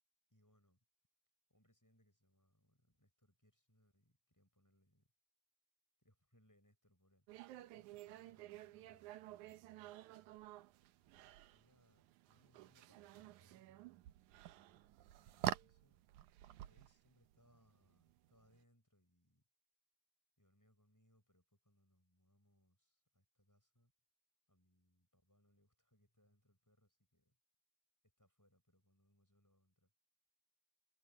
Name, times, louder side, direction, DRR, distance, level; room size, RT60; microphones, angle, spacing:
voice 1, 0.3-0.8 1.5-5.1 6.0-7.3 7.6-9.7 11.5-13.9 14.4-16.0 16.6-19.4 20.4-23.9 24.5-27.4 28.0-29.9, equal, 5° left, 6.3 m, -75 dB
sound 1, 7.3-18.6, right 14 dB, 80° right, 1.8 m, -49 dB
omnidirectional pair, 4.4 m